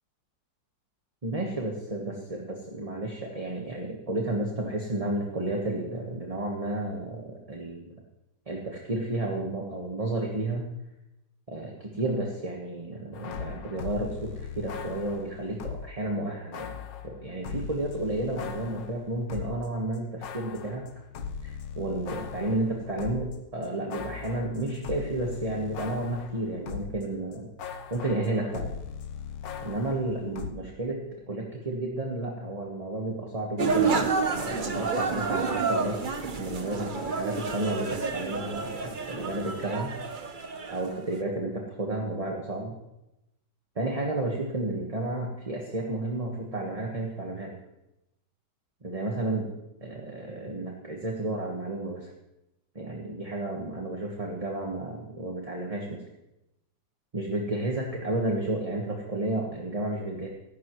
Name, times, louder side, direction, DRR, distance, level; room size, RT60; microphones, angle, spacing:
voice 1, 1.2-7.9 8.5-10.7 11.5-16.8 17.0-20.9 21.4-28.7 29.6-39.9 40.7-42.8 43.7-47.5 48.8-49.5 49.8-52.1 52.7-56.0 57.1-60.3, right 2 dB, 20° right, 0 dB, 1.3 m, -32 dB
sound 1, 13.1-16.0 16.5-19.7 19.9-27.0 27.3-30.5, left 6 dB, 75° left, 1.5 m, -39 dB
sound 2, 33.6-41.1, right 4 dB, 35° right, 0.8 m, -29 dB
17.0 x 15.0 x 3.2 m, 0.90 s
omnidirectional pair, 2.0 m